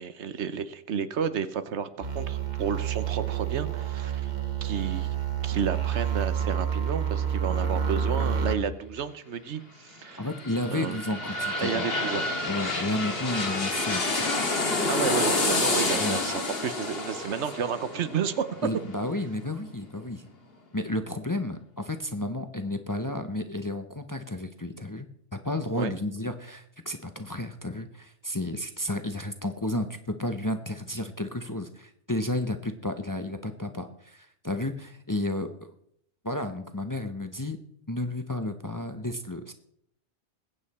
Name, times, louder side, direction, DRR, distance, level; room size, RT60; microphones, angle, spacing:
voice 1, 0.0-4.3 4.6-5.1 5.4-10.3 10.7-11.0 11.6-12.3 14.8-18.4 25.7-25.9, right 7 dB, 80° right, 13 dB, 1.1 m, -31 dB
sound 1, 2.0-8.6, right 8 dB, 40° right, 1.3 m, -28 dB
sound 2, 10.0-19.7 20.1-20.2, left 2 dB, 60° left, 2.1 m, -29 dB
voice 2, 10.2-11.8 12.5-14.3 16.0-16.2 18.6-20.3 20.7-35.7 36.2-37.6 37.9-39.5, left 1 dB, 20° left, 7 dB, 0.6 m, -32 dB
20.5 x 8.7 x 4.2 m, 0.70 s
omnidirectional pair, 1.2 m